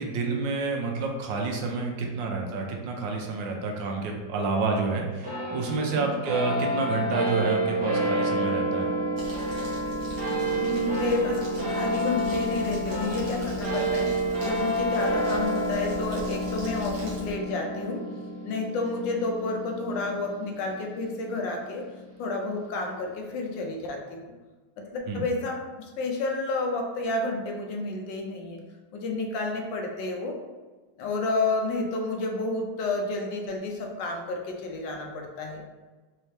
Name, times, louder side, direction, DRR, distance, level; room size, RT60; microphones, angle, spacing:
voice 1, 0.0-8.9 25.1-25.2, right 4 dB, 80° right, 1 dB, 1.3 m, -29 dB
sound 1, 5.2-21.9, right 1 dB, 40° right, 0.6 m, -29 dB
Crumpling crinkling, 9.2-17.3, left 1 dB, 65° right, 1.5 m, -43 dB
voice 2, 10.2-18.1 18.4-21.9 22.2-24.3 24.8-28.6 28.9-30.4 31.0-35.6, left 2 dB, 80° left, 2 dB, 1.3 m, -30 dB
4.2 x 2.8 x 3.2 m, 1.3 s
omnidirectional pair, 2.0 m